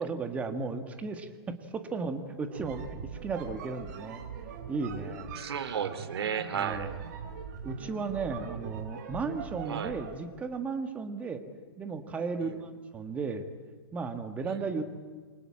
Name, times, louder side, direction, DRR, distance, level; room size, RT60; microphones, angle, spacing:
voice 1, 0.0-2.8 3.2-4.2 4.7-5.4 6.5-6.9 7.6-11.4 11.8-13.5 13.9-14.8, right 4 dB, 10° right, 8 dB, 1.6 m, -35 dB
sound 1, 2.4-10.2, right 7 dB, 40° right, 2.9 m, -42 dB
voice 2, 5.3-6.9 9.7-10.0 12.4-12.6 14.4-14.6, right 7 dB, 65° right, 13 dB, 2.6 m, -34 dB
28.5 x 24.0 x 8.7 m, 1.5 s
hypercardioid pair, 160°, 14 cm